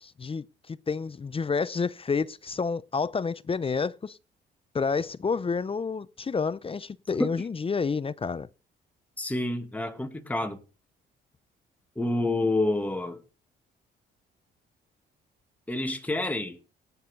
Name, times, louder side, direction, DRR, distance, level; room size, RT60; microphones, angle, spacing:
voice 1, 0.0-4.2 4.7-8.5, left 5 dB, 30° left, 0.6 m, -29 dB
voice 2, 9.2-10.6 12.0-13.2 15.7-16.6, left 2 dB, 10° left, 2.3 m, -28 dB
15.5 x 9.5 x 6.8 m
cardioid pair, 90°, 20 cm